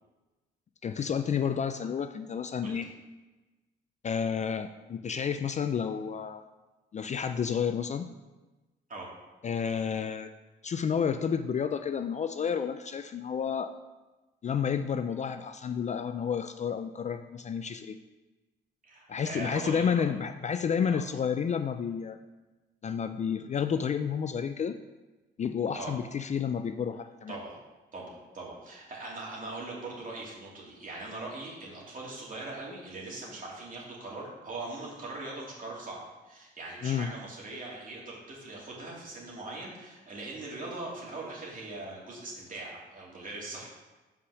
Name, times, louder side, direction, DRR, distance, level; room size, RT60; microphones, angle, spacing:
voice 1, 0.8-2.9 4.0-6.4 6.9-8.1 9.4-10.3 10.6-13.7 14.4-18.0 19.1-22.2 22.8-24.8 25.4-27.4 36.8-37.1, left 7 dB, 35° left, 9 dB, 0.4 m, -30 dB
voice 2, 18.8-20.1 20.9-21.0 25.7-25.9 27.3-27.6 27.9-43.7, right 2 dB, 40° right, -4 dB, 2.7 m, -41 dB
5.8 x 4.9 x 6.3 m, 1.2 s
cardioid pair, 90°, 20 cm